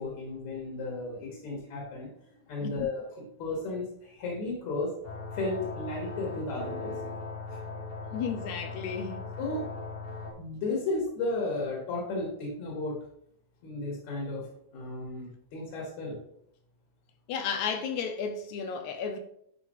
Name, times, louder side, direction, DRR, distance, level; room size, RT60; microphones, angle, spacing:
voice 1, 0.0-2.1 2.5-4.9 5.3-7.2 9.4-9.6 10.4-12.9 13.6-14.5 14.7-16.2, left 2 dB, 60° left, 2.9 m, -34 dB
sound 1, 5.0-10.3, left 3 dB, 35° left, 0.9 m, -39 dB
voice 2, 8.1-9.3 17.3-19.2, left 6 dB, 80° left, 1.8 m, -33 dB
10.0 x 5.2 x 3.2 m
omnidirectional pair, 3.8 m